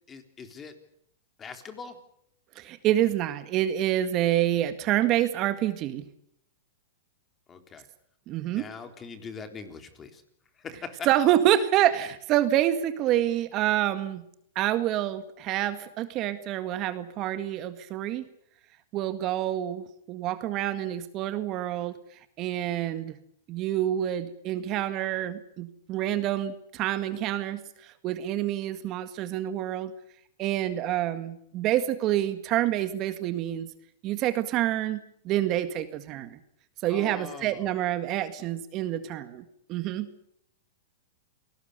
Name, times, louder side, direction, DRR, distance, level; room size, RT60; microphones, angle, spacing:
voice 1, 0.1-0.7 1.4-2.0 7.5-7.9 8.5-10.2 10.6-11.1 36.9-37.7, left 5 dB, 20° left, 7 dB, 3.6 m, -41 dB
voice 2, 2.6-6.0 8.3-8.7 11.1-14.2 14.6-18.3 18.9-22.0 22.4-23.2 23.5-29.9 30.4-33.7 34.0-35.0 35.3-36.4 36.8-40.1, right 12 dB, 35° right, 10 dB, 1.8 m, -27 dB
28.0 x 19.0 x 6.8 m, 0.72 s
hypercardioid pair, 125°, 0 cm